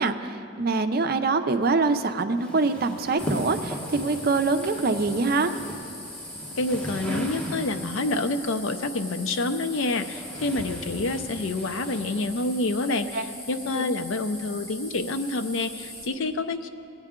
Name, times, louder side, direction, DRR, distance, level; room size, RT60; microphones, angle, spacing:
voice 1, 0.0-5.5 13.1-13.2 13.7-13.8, right 3 dB, 50° right, 8 dB, 0.5 m, -24 dB
sound 1, 2.4-8.0 9.1-12.6, equal, 5° left, 1.3 m, -37 dB
sound 2, 3.2-16.1, left 1 dB, 35° left, 1.7 m, -41 dB
voice 2, 6.6-16.7, left 2 dB, 75° left, 9 dB, 0.6 m, -28 dB
19.0 x 8.8 x 3.7 m, 2.6 s
head